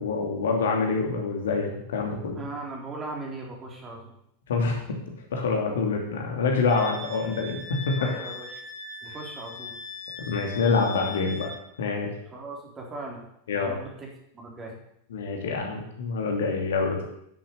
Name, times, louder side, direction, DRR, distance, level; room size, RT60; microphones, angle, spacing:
voice 1, 0.0-2.4 4.5-4.8 5.3-7.6 7.9-8.1 10.2-11.5 11.8-12.1 13.5-13.7 15.1-17.0, left 4 dB, 60° left, 1 dB, 2.8 m, -26 dB
voice 2, 2.4-4.1 8.0-8.6 9.0-9.7 12.3-13.2 13.5-14.1 14.3-14.8, right 2 dB, 20° right, -1 dB, 3.7 m, -38 dB
Wind instrument woodwind instrument, 6.7-11.6, left 3 dB, 10° left, 3.6 m, -40 dB
10.5 x 8.7 x 7.0 m, 0.74 s
figure-of-eight pair, 90°, 0 cm